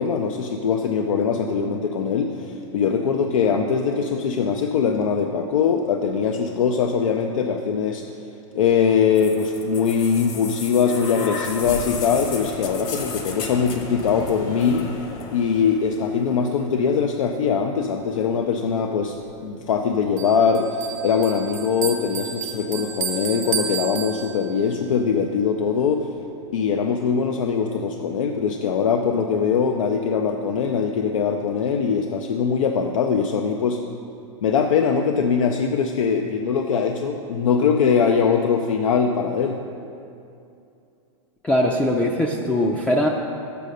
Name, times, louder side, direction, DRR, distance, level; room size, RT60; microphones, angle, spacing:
voice 1, 0.0-8.0 8.5-14.9 15.3-19.2 19.4-26.1 26.5-33.8 34.4-39.6, left 6 dB, 85° left, 4 dB, 0.5 m, -22 dB
sound 1, 9.2-17.1 18.1-18.2, left 4 dB, 50° left, 1.2 m, -34 dB
Bell, 20.2-24.7, right 8 dB, 90° right, 0.9 m, -31 dB
voice 2, 41.4-43.1, left 1 dB, 5° left, 0 dB, 0.4 m, -21 dB
6.8 x 6.6 x 6.4 m, 2.6 s
hypercardioid pair, 135°, 17 cm